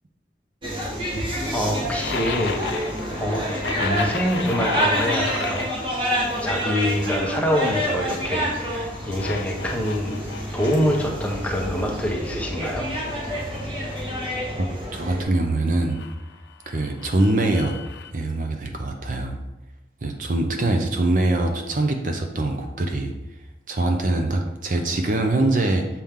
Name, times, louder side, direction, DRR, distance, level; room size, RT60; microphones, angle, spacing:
sound 1, 0.6-15.2, equal, 30° right, 1.3 m, -28 dB
voice 1, 1.5-2.6 3.1-3.4 3.8-5.7 6.4-10.2 10.5-12.9, equal, 10° left, -1 dB, 0.9 m, -25 dB
sound 2, 2.0-11.8 12.1-14.7 15.9-18.1, left 5 dB, 90° left, 0.5 m, -36 dB
voice 2, 14.9-16.0 16.7-17.8 18.1-19.4 20.0-23.1 23.7-25.9, right 2 dB, 45° right, 4 dB, 0.6 m, -23 dB
7.2 x 4.4 x 3.6 m, 1.0 s
head